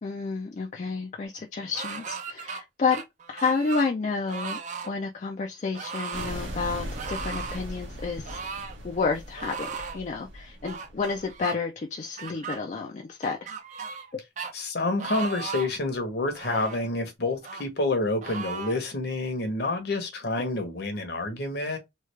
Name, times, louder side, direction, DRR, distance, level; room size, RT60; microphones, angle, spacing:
voice 1, 0.0-3.0 3.3-4.6 4.8-8.4 8.8-13.5 14.1-14.2, left 4 dB, 35° left, 0.3 m, -30 dB
sound 1, 1.7-2.6 2.9-3.9 4.3-4.9 5.7-6.3 6.9-7.6 8.2-8.8 9.4-10.0 10.6-11.5 12.2-12.6 13.2-14.1 14.4-14.5 15.0-15.8 16.3-16.8 17.4-17.6 18.2-18.8, right 5 dB, 40° right, 0.5 m, -36 dB
sound 2, 6.1-11.3, equal, 75° right, 1.2 m, -39 dB
voice 2, 14.5-21.8, left 2 dB, 55° left, 0.9 m, -28 dB
3.2 x 2.3 x 3.1 m
head